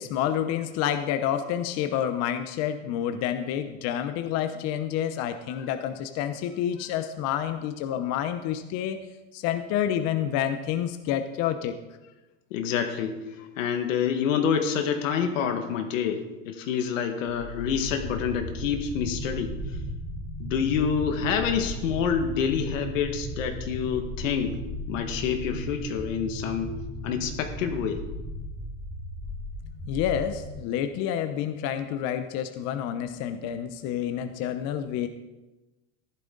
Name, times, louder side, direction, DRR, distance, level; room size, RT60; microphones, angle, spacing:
voice 1, 0.0-9.1 9.3-11.8 29.9-35.1, left 10 dB, 45° left, 9 dB, 0.8 m, -29 dB
voice 2, 12.5-13.2 13.6-19.6 20.4-24.6 24.9-26.7 27.0-28.1, left 7 dB, 85° left, 6 dB, 1.9 m, -27 dB
sound 1, 17.3-30.5, equal, 10° right, 3.9 m, -36 dB
14.5 x 12.0 x 3.9 m, 1.1 s
supercardioid pair, 150°, 37 cm